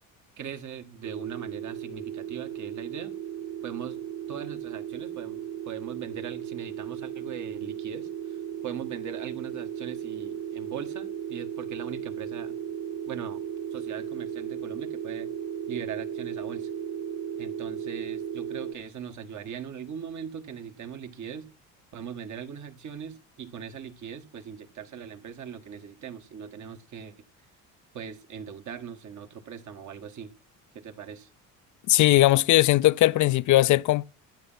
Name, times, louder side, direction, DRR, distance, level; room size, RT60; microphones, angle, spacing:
voice 1, 0.4-3.1 3.6-4.0 4.3-12.6 13.1-13.4 13.7-15.3 15.7-16.7 17.4-21.5 21.9-27.1 27.9-30.3 30.7-31.3, right 8 dB, 55° right, 2.0 m, -40 dB
sound 1, 1.0-18.7, right 9 dB, 90° right, 1.8 m, -36 dB
voice 2, 31.9-34.0, left 16 dB, 55° left, 0.5 m, -19 dB
11.5 x 9.1 x 5.8 m
supercardioid pair, 85°, 36 cm